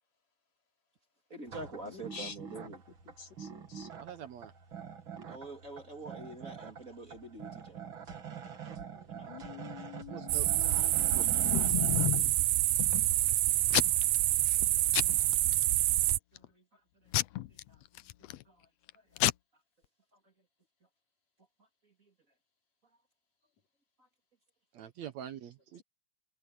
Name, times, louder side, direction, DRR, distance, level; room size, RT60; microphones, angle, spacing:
voice 1, 1.3-2.8 5.3-7.9 8.5-8.6 9.2-9.5 10.7-10.9 11.1-12.1 13.0-13.3 13.9-14.2 14.7-14.8 15.4-15.5 16.0-17.1 17.5-18.7 18.9-19.2 20.1-20.3 21.6-22.1 24.0-24.1, right 2 dB, 25° right, 2.8 m, -49 dB
sound 1, 1.5-12.2, right 7 dB, 40° right, 2.7 m, -46 dB
voice 2, 1.9-2.3 2.6-2.7 3.2-3.9 9.3-12.2, left 8 dB, 55° left, 4.7 m, -48 dB
voice 3, 4.0-4.5 9.4-9.7 10.1-10.7 11.1-11.3 24.7-25.8, right 10 dB, 70° right, 2.1 m, -45 dB
sound 2, 10.3-16.2, right 14 dB, 85° right, 1.3 m, -27 dB
Packing tape duct tape / Tearing, 10.9-12.3 12.8-13.3 13.7-14.2 14.5-14.7 14.9-15.6 16.1-16.5 17.1-18.4 18.9-19.0 19.2-19.3, left 16 dB, 80° left, 1.4 m, -32 dB
omnidirectional pair, 3.6 m